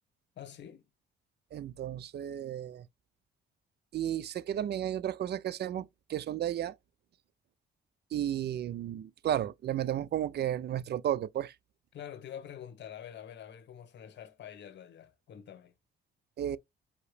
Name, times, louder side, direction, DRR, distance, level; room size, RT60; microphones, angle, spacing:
voice 1, 0.4-0.9 11.9-15.7, left 9 dB, 60° left, 1.1 m, -46 dB
voice 2, 1.5-2.8 3.9-6.8 8.1-11.5 16.4-16.6, right 11 dB, 55° right, 0.5 m, -33 dB
5.3 x 2.8 x 3.3 m
cardioid pair, 90°, 20 cm